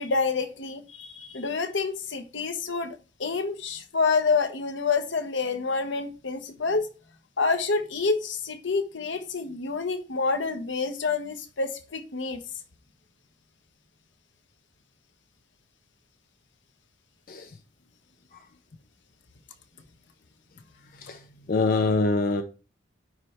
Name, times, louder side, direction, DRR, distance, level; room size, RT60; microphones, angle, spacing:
voice 1, 0.0-6.9 7.4-12.4 20.9-21.5, left 4 dB, 75° left, 1.1 m, -28 dB
voice 2, 21.5-22.4, left 3 dB, 50° left, 0.6 m, -24 dB
9.4 x 3.3 x 4.3 m
head